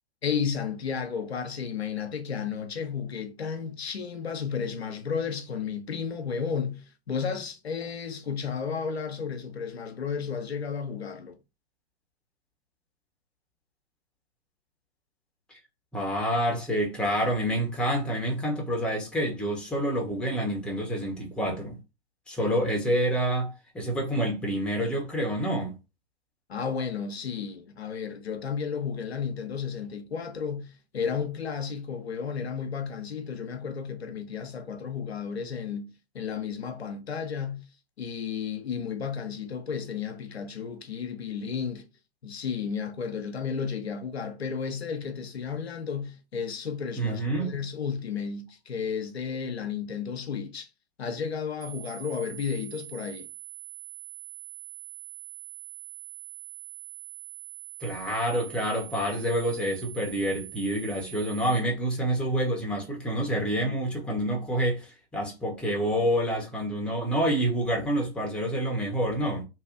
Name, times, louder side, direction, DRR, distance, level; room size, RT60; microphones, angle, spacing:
voice 1, 0.2-11.4 26.5-35.9 36.1-37.7 38.0-41.9 42.2-50.7 51.0-53.3, left 6 dB, 85° left, 0.6 m, -33 dB
voice 2, 15.9-21.8 22.3-25.8 47.0-47.5 57.8-69.4, right 1 dB, 5° left, 0.7 m, -28 dB
sound 1, 51.6-61.6, right 15 dB, 40° right, 0.9 m, -44 dB
2.7 x 2.4 x 2.4 m
figure-of-eight pair, 110°, 31 cm